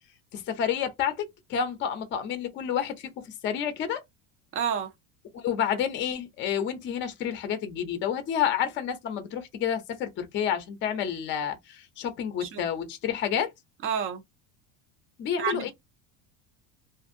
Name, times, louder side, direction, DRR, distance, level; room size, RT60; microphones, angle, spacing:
voice 1, 0.3-4.0 5.3-13.5 15.2-15.7, left 8 dB, 30° left, 0.5 m, -29 dB
voice 2, 4.5-4.9 12.4-12.6 13.8-14.2 15.4-15.7, right 8 dB, 30° right, 0.4 m, -29 dB
2.5 x 2.5 x 2.5 m
cardioid pair, 165°, 42 cm